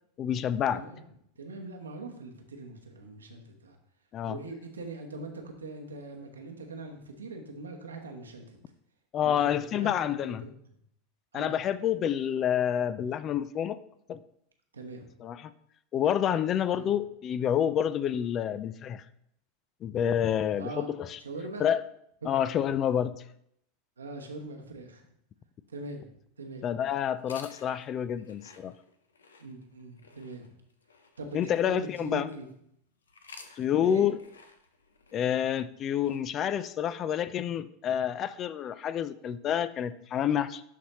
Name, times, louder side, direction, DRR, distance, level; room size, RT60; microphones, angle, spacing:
voice 1, 0.2-0.8 4.1-4.4 9.1-10.4 11.3-13.8 14.1-14.2 15.2-15.5 15.9-19.0 19.8-21.2 21.6-21.8 22.3-23.2 26.6-28.7 31.3-32.3 33.6-34.2 35.1-40.6, left 9 dB, 35° left, 16 dB, 0.4 m, -28 dB
voice 2, 1.4-3.8 4.3-8.6 9.2-9.9 10.2-10.5 11.3-11.6 14.7-15.1 16.7-16.9 18.5-18.6 20.6-20.9 21.2-21.6 22.2-22.3 24.0-25.0 25.7-26.6 29.4-30.5 31.2-32.5 33.7-34.1, right 3 dB, 80° right, 3 dB, 1.1 m, -41 dB
sound 1, 27.2-32.5 33.0-37.1, left 4 dB, 80° left, 0.7 m, -55 dB
11.5 x 4.2 x 3.0 m, 0.72 s
figure-of-eight pair, 85°, 0 cm